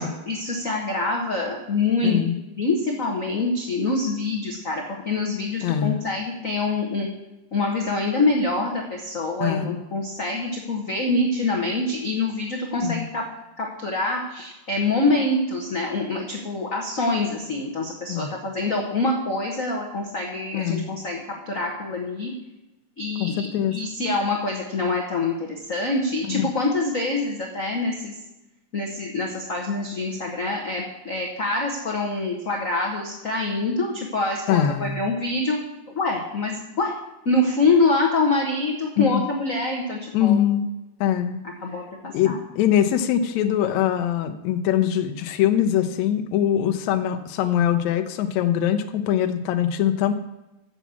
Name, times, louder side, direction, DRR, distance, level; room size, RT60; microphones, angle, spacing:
voice 1, 0.3-2.2 2.6-7.1 7.5-13.2 13.6-22.3 23.0-28.1 28.7-36.9 37.2-40.4 41.6-42.4, left 3 dB, 65° left, 0 dB, 0.8 m, -25 dB
voice 2, 2.0-2.4 5.6-6.0 9.4-9.8 12.8-13.0 18.1-18.3 20.5-20.9 23.2-23.7 26.3-26.5 34.5-35.0 39.0-39.2 40.1-40.7 41.0-41.4 42.1-50.1, left 10 dB, 80° left, 8 dB, 1.9 m, -22 dB
7.2 x 7.1 x 8.1 m, 1.0 s
omnidirectional pair, 3.3 m